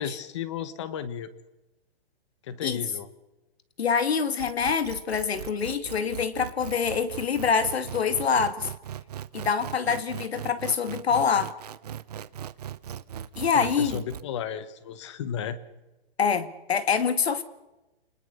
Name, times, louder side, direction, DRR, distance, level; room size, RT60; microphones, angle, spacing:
voice 1, 0.0-1.3 2.4-3.1 13.5-15.6, left 8 dB, 30° left, 1.2 m, -34 dB
voice 2, 3.8-8.7 9.3-11.5 13.4-14.0 16.2-17.4, left 6 dB, 85° left, 2.3 m, -25 dB
sound 1, 4.4-14.2, right 9 dB, 40° right, 0.8 m, -39 dB
30.0 x 20.5 x 6.9 m
hypercardioid pair, 170°, 31 cm